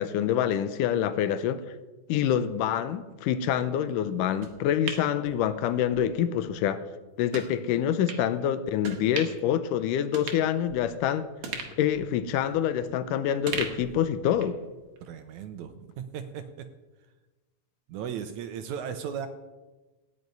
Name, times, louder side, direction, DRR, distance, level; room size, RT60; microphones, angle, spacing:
voice 1, 0.0-1.6 2.1-6.8 7.2-11.3 11.8-14.6, left 10 dB, 80° left, 12 dB, 2.1 m, -26 dB
sound 1, 4.4-6.0 6.4-6.5 7.3-7.5 8.1-8.2 8.8-9.5 9.8-9.9 10.1-11.0 11.4-13.0 13.5-14.6 15.0-15.1, right 5 dB, 60° right, 2.6 m, -38 dB
voice 2, 15.0-16.7 17.9-19.3, right 8 dB, 80° right, 9 dB, 1.8 m, -36 dB
16.0 x 5.4 x 9.3 m, 1.2 s
omnidirectional pair, 4.0 m